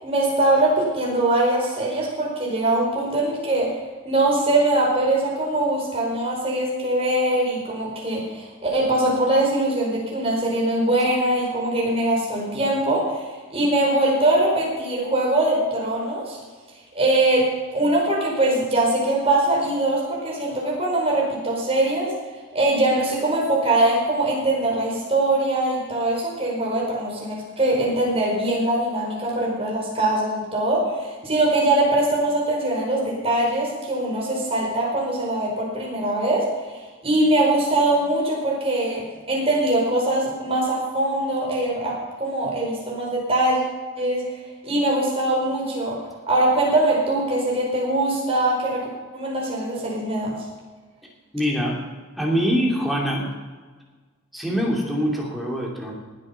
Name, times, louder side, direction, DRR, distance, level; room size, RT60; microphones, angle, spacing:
voice 1, 0.0-3.7 4.0-13.2 13.5-16.4 16.9-22.1 22.5-36.5 37.0-43.6 44.0-44.2 44.6-46.0 46.3-48.9 49.1-50.4, right 1 dB, 25° right, -3 dB, 4.8 m, -22 dB
voice 2, 51.3-51.8 52.2-53.3 54.3-56.0, equal, ahead, -3 dB, 2.7 m, -24 dB
19.5 x 8.5 x 5.7 m, 1.4 s
head